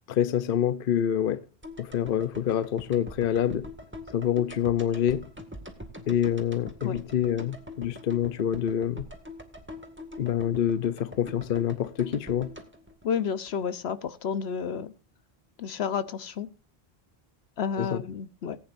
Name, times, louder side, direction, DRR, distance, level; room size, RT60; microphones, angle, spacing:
voice 1, 0.1-1.4 1.8-3.7 4.1-5.3 6.1-9.1 10.2-12.5 17.8-18.0, left 10 dB, 60° left, 0.9 m, -26 dB
sound 1, 1.6-13.8 14.1-14.2, left 1 dB, 10° right, 1.9 m, -44 dB
voice 2, 13.0-14.9 15.6-16.5 17.6-18.6, left 6 dB, 85° left, 1.1 m, -31 dB
19.0 x 9.2 x 2.6 m
omnidirectional pair, 1.1 m